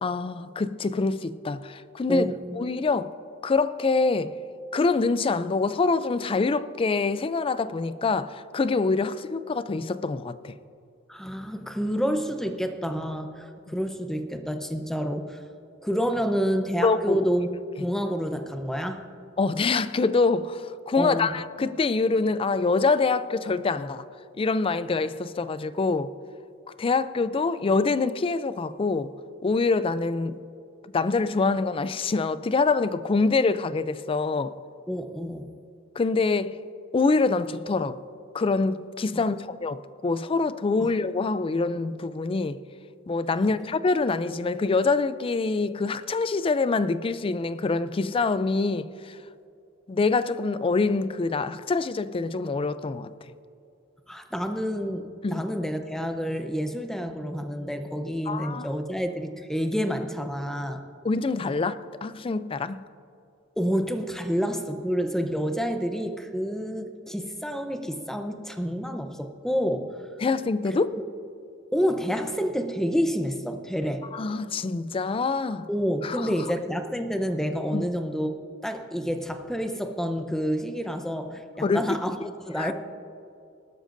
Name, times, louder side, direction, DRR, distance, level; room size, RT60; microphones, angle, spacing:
voice 1, 0.0-3.1 3.4-4.4 4.7-10.5 13.7-13.8 16.8-17.2 19.4-24.0 24.4-26.1 26.8-29.1 29.4-30.4 30.9-34.5 36.0-36.6 36.9-38.0 38.3-42.6 43.1-49.2 49.9-53.1 55.2-55.5 58.3-58.7 61.0-62.8 70.2-71.0 74.1-75.7 76.0-76.3 77.7-77.8 81.6-82.0 82.6-82.7, left 3 dB, 25° left, 0.4 m, -25 dB
voice 2, 2.1-2.4 11.1-15.4 15.8-17.5 17.8-19.1 21.0-21.4 34.9-35.5 39.1-39.6 40.8-40.9 43.4-43.5 54.1-60.8 63.6-69.9 70.7-71.0 71.7-74.0 75.7-78.3 78.6-82.7, equal, ahead, 0.7 m, -29 dB
19.0 x 12.5 x 2.6 m
head